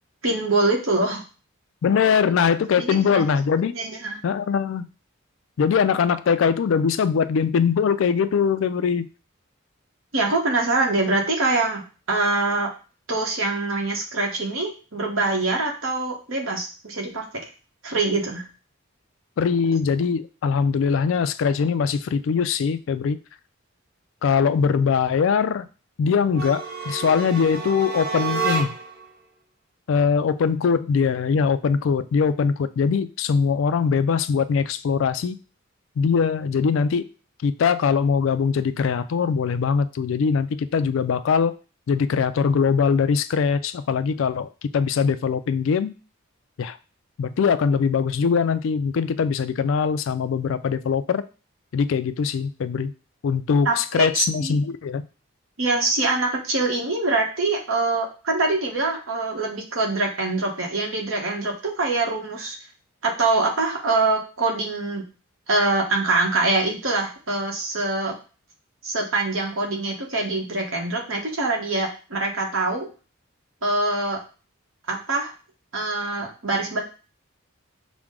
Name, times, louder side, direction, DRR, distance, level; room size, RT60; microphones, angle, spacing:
voice 1, 0.2-1.2 2.8-3.2 3.7-4.2 10.1-11.8 12.1-12.7 13.1-17.2 17.8-18.4 53.6-54.6 55.6-62.6 63.0-65.0 65.5-68.1 68.8-72.9 73.6-74.2 74.9-75.3 75.7-76.8, right 3 dB, 70° right, 0 dB, 1.2 m, -24 dB
voice 2, 1.8-3.7 4.2-4.9 5.6-9.1 19.4-23.2 24.2-25.7 26.0-28.7 29.9-35.4 36.0-37.1 37.4-41.5 41.9-45.9 46.6-46.8 47.2-51.2 51.7-52.9 53.2-55.1, left 6 dB, 60° left, 13 dB, 0.3 m, -22 dB
sound 1, 26.3-29.0, right 4 dB, 45° right, 0.8 m, -29 dB
5.9 x 2.1 x 3.7 m, 0.34 s
head